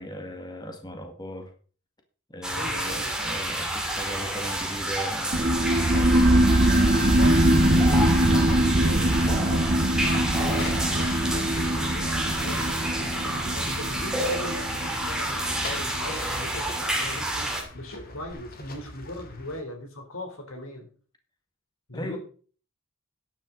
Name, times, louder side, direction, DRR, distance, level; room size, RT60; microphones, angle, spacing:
voice 1, 0.0-1.5 2.3-6.5 21.9-22.2, equal, 20° left, 4 dB, 1.9 m, -38 dB
sound 1, 2.4-17.6, right 1 dB, 5° right, 2.6 m, -29 dB
voice 2, 2.6-3.1 4.0-4.2 6.9-20.9 21.9-22.2, left 1 dB, 80° left, 4 dB, 3.5 m, -39 dB
sound 2, 5.3-16.5, right 1 dB, 40° right, 0.9 m, -22 dB
sound 3, 9.9-19.6, left 2 dB, 45° left, 2.4 m, -43 dB
12.0 x 10.0 x 3.9 m, 0.40 s
head